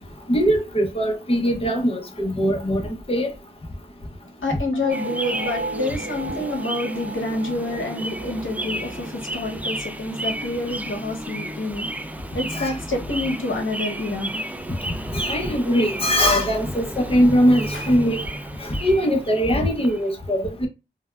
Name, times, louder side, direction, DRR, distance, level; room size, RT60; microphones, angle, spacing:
voice 1, 0.3-2.8 3.1-3.3 12.5-12.7 15.1-18.2 18.6-20.7, equal, 30° left, 0.7 m, -21 dB
voice 2, 4.4-11.9 12.3-14.3 17.7-17.9, left 2 dB, 80° left, 0.9 m, -28 dB
sound 1, 4.7-11.7, right 2 dB, 65° right, 0.9 m, -36 dB
sound 2, 4.9-20.1, right 1 dB, 10° right, 0.3 m, -33 dB
3.3 x 2.1 x 2.3 m
wide cardioid pair, 50°, 20 cm